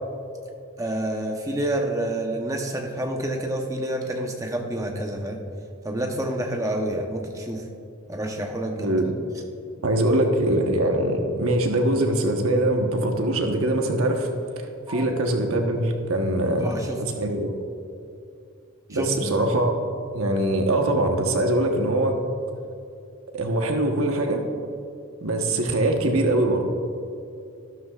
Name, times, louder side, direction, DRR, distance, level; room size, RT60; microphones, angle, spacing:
voice 1, 0.8-5.4 5.8-7.6 8.1-8.9 10.1-10.2 14.9-15.0 16.6-17.0 18.9-19.3, right 1 dB, 15° right, 1 dB, 0.9 m, -28 dB
voice 2, 9.8-14.3 14.6-17.6 18.9-19.7 20.1-22.2 23.3-24.4 25.2-26.6, right 1 dB, 85° right, 3 dB, 1.2 m, -23 dB
13.0 x 12.0 x 2.4 m, 2.5 s
head